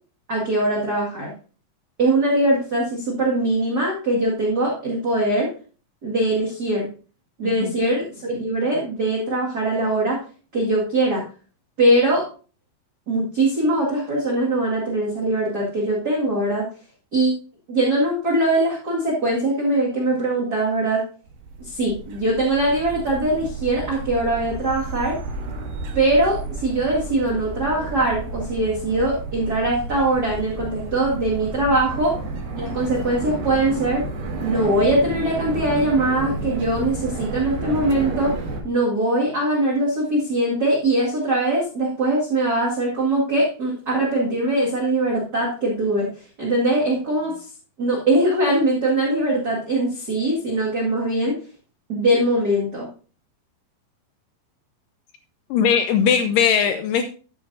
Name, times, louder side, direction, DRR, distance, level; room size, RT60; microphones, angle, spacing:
voice 1, 0.3-1.3 2.0-5.5 6.0-6.9 7.4-10.2 10.5-11.2 11.8-12.3 13.1-16.7 17.1-17.3 17.7-21.0 21.6-25.2 25.9-32.2 32.5-34.1 34.4-46.1 46.4-47.5 47.8-51.4 51.9-52.9, right 1 dB, 35° right, -4 dB, 1.9 m, -21 dB
sound 1, 21.3-38.6, right 3 dB, 80° right, 3.7 m, -31 dB
voice 2, 55.5-57.0, left 7 dB, 80° left, 7 dB, 2.2 m, -19 dB
13.0 x 8.5 x 2.7 m, 0.37 s
omnidirectional pair, 4.2 m